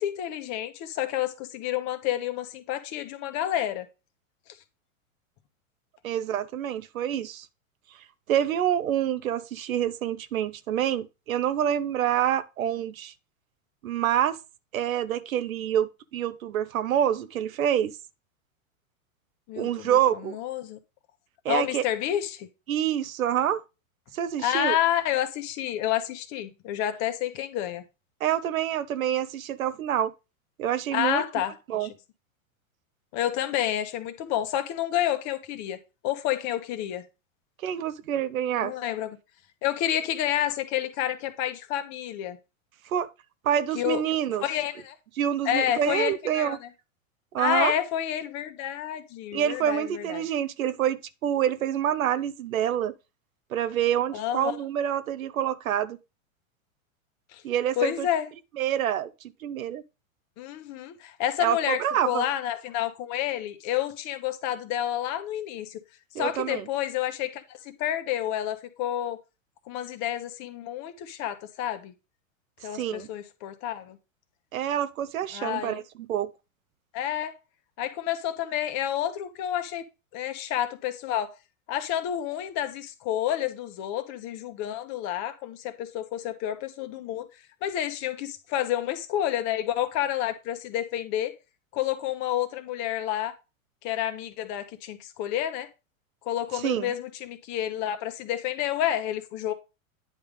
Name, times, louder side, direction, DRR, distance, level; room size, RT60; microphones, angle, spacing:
voice 1, 0.0-3.9 19.5-20.8 21.5-22.5 24.4-27.8 30.9-31.9 33.1-35.8 36.0-37.0 38.6-39.2 39.6-42.4 43.7-44.0 44.4-45.0 45.4-46.7 47.4-50.3 54.1-54.6 57.3-57.4 57.8-58.3 60.4-65.8 66.2-69.2 69.7-71.9 72.6-74.0 75.3-75.8 76.9-77.3 77.8-79.9 80.1-81.3 81.7-87.3 87.6-91.3 91.7-93.3 93.8-95.7 96.2-99.5, left 11 dB, 45° left, 1.2 m, -29 dB
voice 2, 6.0-7.5 8.3-13.1 13.8-14.4 14.7-17.9 19.6-20.4 21.4-21.8 22.7-23.6 24.1-24.8 28.2-30.1 30.6-31.2 31.7-31.9 37.6-38.7 42.9-43.1 43.4-44.4 45.2-46.6 47.3-47.7 49.3-52.9 53.5-56.0 57.4-58.1 58.6-59.1 59.4-59.8 61.4-62.3 66.1-66.6 72.7-73.1 74.5-75.8 76.1-76.3 96.6-96.9, right 10 dB, 80° right, 0.8 m, -27 dB
9.6 x 3.4 x 5.3 m
hypercardioid pair, 110°, 40 cm